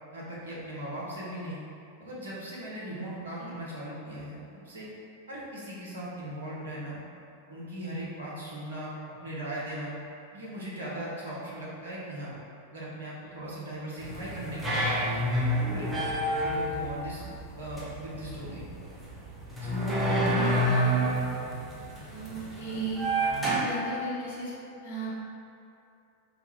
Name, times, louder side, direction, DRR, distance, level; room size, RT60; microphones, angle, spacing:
voice 1, 0.1-1.6 2.0-4.9 5.3-7.0 7.5-8.9 9.2-9.9 10.3-12.3 12.7-15.0 15.6-16.1 16.4-17.2 17.6-18.7 19.6-19.7, right 1 dB, 65° right, -6 dB, 0.9 m, -38 dB
sound 1, 14.0-23.5, right 1 dB, 5° right, 0.8 m, -29 dB
voice 2, 22.1-23.1 23.4-24.5 24.8-25.2, right 3 dB, 55° left, -8 dB, 1.2 m, -36 dB
4.8 x 2.3 x 3.2 m, 2.7 s
figure-of-eight pair, 90°, 0 cm